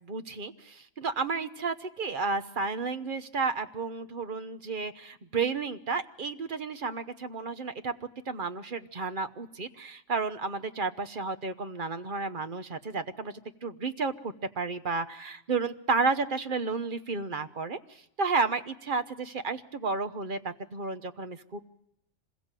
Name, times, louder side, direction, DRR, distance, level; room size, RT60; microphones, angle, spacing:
voice 1, 0.0-7.9 8.3-13.3 13.6-21.6, right 4 dB, 45° right, 9 dB, 1.1 m, -32 dB
26.0 x 21.5 x 7.6 m, 0.82 s
omnidirectional pair, 1.3 m